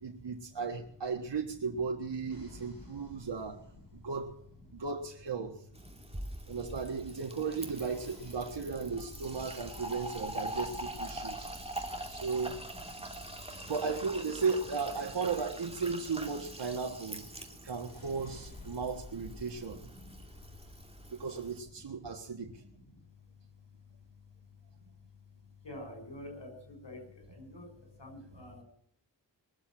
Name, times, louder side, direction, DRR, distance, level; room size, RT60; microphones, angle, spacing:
voice 1, 0.0-3.6 3.9-4.3 4.7-5.6 6.5-11.5 12.1-12.6 13.7-17.2 17.6-19.8 21.1-22.5, right 5 dB, 75° right, 1 dB, 1.7 m, -35 dB
sound 1, 2.3-5.8 7.3-15.3 17.7-20.8, left 3 dB, 50° left, 4.8 m, -54 dB
Fill (with liquid), 5.8-21.6, right 1 dB, 15° right, 2.7 m, -44 dB
voice 2, 25.6-27.0 27.4-27.7 28.0-28.6, left 1 dB, 80° left, 3 dB, 6.7 m, -46 dB
21.5 x 7.4 x 9.0 m, 0.64 s
cardioid pair, 50°, 43 cm